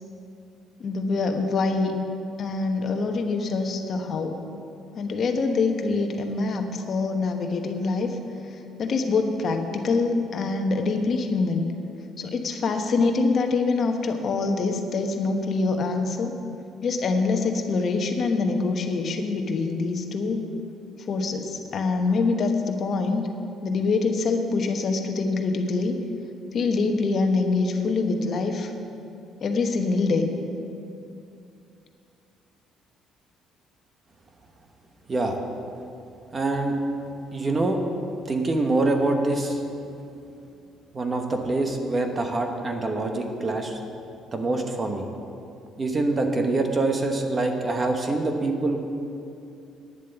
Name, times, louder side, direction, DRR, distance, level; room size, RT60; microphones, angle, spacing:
voice 1, 0.8-1.9 2.4-4.4 4.9-8.2 8.8-11.7 12.2-16.4 16.8-20.4 21.1-23.3 23.6-25.9 26.5-28.7 29.4-30.3, left 3 dB, 45° left, 4 dB, 1.1 m, -25 dB
voice 2, 36.3-36.8 37.3-37.8 38.3-39.6 40.9-43.8 44.3-45.1 45.8-48.8, right 2 dB, 25° right, 4 dB, 1.2 m, -25 dB
10.5 x 7.5 x 8.0 m, 2.6 s
cardioid pair, 135°, 0 cm